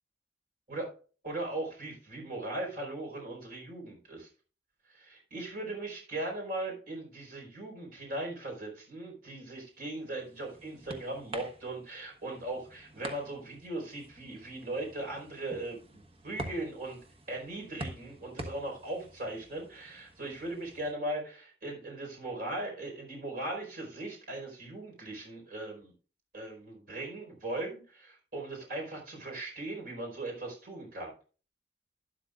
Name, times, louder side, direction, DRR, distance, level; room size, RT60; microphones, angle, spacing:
voice 1, 1.2-4.3 4.9-17.0 17.3-25.9 26.3-31.1, right 2 dB, 55° right, 1 dB, 4.7 m, -39 dB
sound 1, 9.8-20.9, right 1 dB, 30° right, 1.3 m, -47 dB
12.0 x 11.5 x 2.5 m, 0.37 s
head